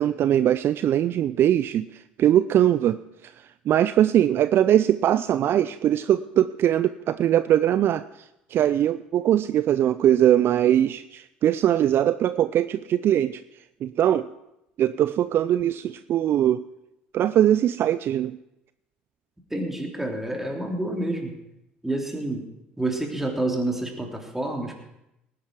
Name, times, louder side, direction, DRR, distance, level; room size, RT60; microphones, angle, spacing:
voice 1, 0.0-3.0 3.2-3.3 3.7-8.0 8.5-13.4 13.8-14.3 14.8-16.6 17.1-18.4, right 11 dB, 50° right, 14 dB, 0.4 m, -21 dB
voice 2, 19.5-21.4 21.8-22.5 22.8-24.8, right 2 dB, 5° right, 1 dB, 3.4 m, -28 dB
19.0 x 10.5 x 4.6 m, 0.86 s
hypercardioid pair, 65°, 5 cm